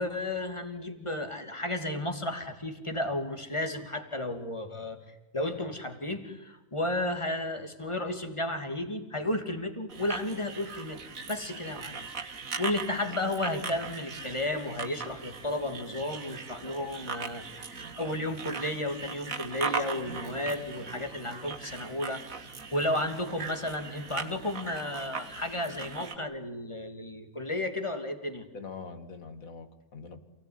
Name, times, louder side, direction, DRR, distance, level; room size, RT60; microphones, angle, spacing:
voice 1, 0.0-12.1 12.6-28.4, left 1 dB, 20° left, 6 dB, 2.8 m, -33 dB
sound 1, 9.9-26.2, right 5 dB, 65° right, 2.2 m, -39 dB
voice 2, 28.5-30.2, left 4 dB, 65° left, 8 dB, 2.7 m, -44 dB
28.5 x 18.5 x 9.8 m, 1.0 s
omnidirectional pair, 1.5 m